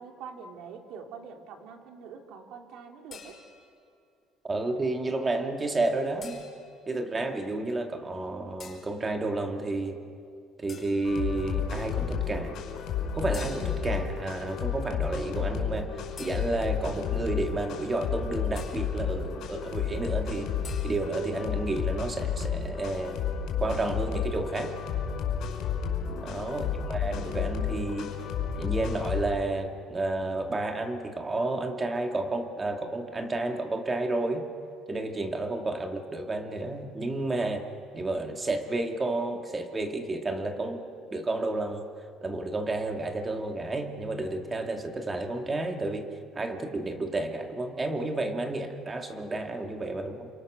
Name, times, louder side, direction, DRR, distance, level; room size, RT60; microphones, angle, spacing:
voice 1, 0.0-3.4 26.1-26.7, right 6 dB, 70° right, 3 dB, 3.2 m, -45 dB
sound 1, 3.1-3.8 6.2-6.8 8.6-9.0 10.7-11.2 13.3-14.0 16.2-16.9 18.6-19.0 20.6-20.9, left 6 dB, 30° left, 4.4 m, -47 dB
voice 2, 4.4-6.4 6.9-10.0 10.6-12.6 13.1-15.9 16.2-20.5 20.8-23.2 23.6-24.7 26.2-28.2 28.5-34.5 34.9-37.7 37.9-41.8 42.2-50.3, right 2 dB, 20° right, 4 dB, 2.1 m, -31 dB
sound 2, 11.0-29.2, left 7 dB, 60° left, 5.1 m, -32 dB
28.5 x 26.5 x 6.4 m, 2.3 s
cardioid pair, 150°, 0 cm